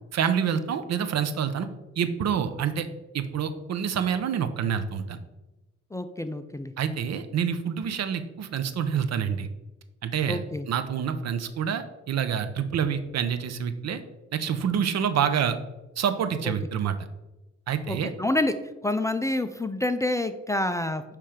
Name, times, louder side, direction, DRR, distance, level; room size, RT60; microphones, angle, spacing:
voice 1, 0.1-1.7 2.0-2.9 3.1-5.2 6.8-9.5 10.0-10.4 10.7-14.0 14.3-15.6 16.0-16.9 17.7-18.1, right 8 dB, 60° right, 10 dB, 0.7 m, -27 dB
voice 2, 5.9-6.7 10.3-10.7 16.4-16.5 17.9-18.5 18.8-21.0, left 1 dB, 10° left, 9 dB, 0.4 m, -27 dB
8.7 x 3.3 x 5.0 m, 1.0 s
cardioid pair, 90°, 30 cm